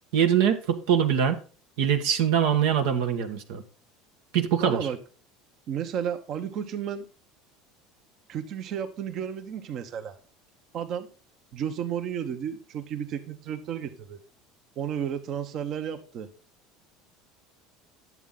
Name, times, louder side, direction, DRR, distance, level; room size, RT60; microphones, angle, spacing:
voice 1, 0.1-1.4 1.8-3.6 4.3-4.9, right 8 dB, 70° right, 1.2 m, -23 dB
voice 2, 4.6-5.0 5.7-7.0 8.3-10.2 10.7-11.1 11.5-14.2 14.8-16.3, right 8 dB, 50° right, 1.2 m, -32 dB
11.0 x 7.5 x 3.9 m
hypercardioid pair, 80°, 0 cm